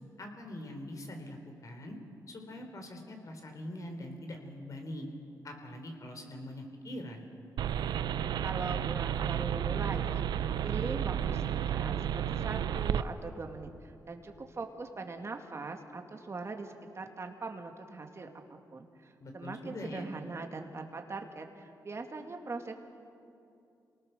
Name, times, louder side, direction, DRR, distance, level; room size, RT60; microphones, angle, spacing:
voice 1, 0.2-2.0 2.3-5.1 5.4-7.3 19.2-20.1, left 1 dB, 50° left, 4 dB, 4.0 m, -43 dB
sound 1, 7.6-13.0, right 10 dB, 85° right, 0.6 m, -32 dB
voice 2, 8.4-10.2 10.6-11.9 12.3-22.7, right 3 dB, 40° right, 4 dB, 2.4 m, -41 dB
27.5 x 19.0 x 6.8 m, 2.5 s
cardioid pair, 70°, 7 cm